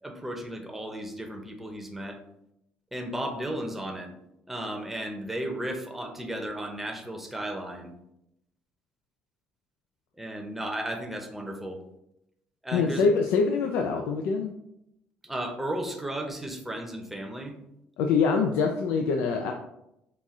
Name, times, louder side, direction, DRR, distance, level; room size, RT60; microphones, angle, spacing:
voice 1, 0.0-2.2 2.9-4.1 4.5-7.9 10.2-11.8 12.6-13.0 15.2-17.6, right 1 dB, 5° right, 2 dB, 0.7 m, -34 dB
voice 2, 12.7-14.5 18.0-19.5, left 5 dB, 85° left, 3 dB, 0.4 m, -24 dB
5.7 x 2.4 x 3.6 m, 0.82 s
cardioid pair, 125°, 4 cm